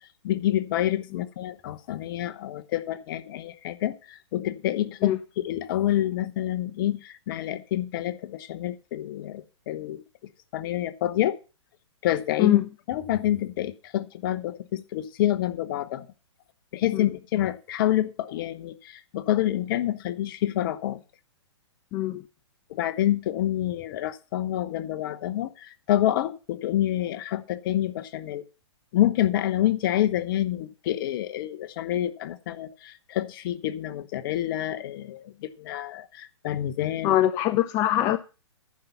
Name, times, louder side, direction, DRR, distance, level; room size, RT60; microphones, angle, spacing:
voice 1, 0.2-10.0 10.5-11.4 12.0-12.6 12.9-16.1 16.7-21.0 22.7-28.4 28.9-37.1, left 13 dB, 45° left, 1.0 m, -27 dB
voice 2, 21.9-22.2 37.0-38.2, left 13 dB, 25° left, 0.5 m, -23 dB
10.5 x 5.4 x 7.0 m
hypercardioid pair, 130°, 15 cm